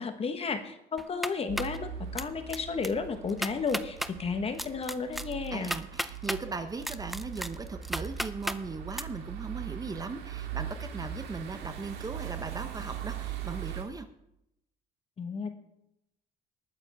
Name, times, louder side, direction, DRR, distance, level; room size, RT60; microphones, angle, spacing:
voice 1, 0.0-5.7 15.2-15.5, left 5 dB, 35° left, 8 dB, 1.3 m, -33 dB
sound 1, 1.0-1.8 2.2-2.6 2.8-2.9 3.3-4.1 4.6-6.4 6.8-8.6 8.9-9.0, equal, ahead, 0.5 m, -34 dB
sound 2, 1.5-13.8, right 9 dB, 80° right, 1.9 m, -40 dB
voice 2, 5.5-14.1, right 3 dB, 20° right, 9 dB, 0.8 m, -38 dB
20.0 x 9.2 x 3.6 m, 0.83 s
cardioid pair, 110°, 17 cm